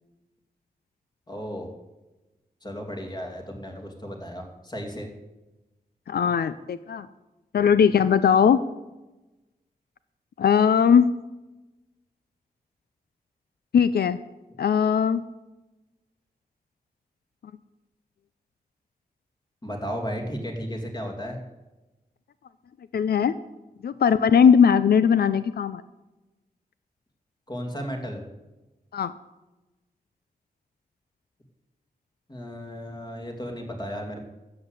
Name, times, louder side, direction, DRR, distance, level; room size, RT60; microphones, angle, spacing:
voice 1, 1.3-1.7 2.6-5.1 19.6-21.4 27.5-28.2 32.3-34.2, equal, 25° left, 2 dB, 2.6 m, -34 dB
voice 2, 6.1-7.1 7.5-8.6 10.4-11.1 13.7-14.2 14.6-15.2 22.9-23.3 23.8-25.8 28.9-29.1, left 7 dB, 85° left, 14 dB, 0.5 m, -19 dB
13.0 x 8.0 x 8.1 m, 1.1 s
wide cardioid pair, 135°, 16 cm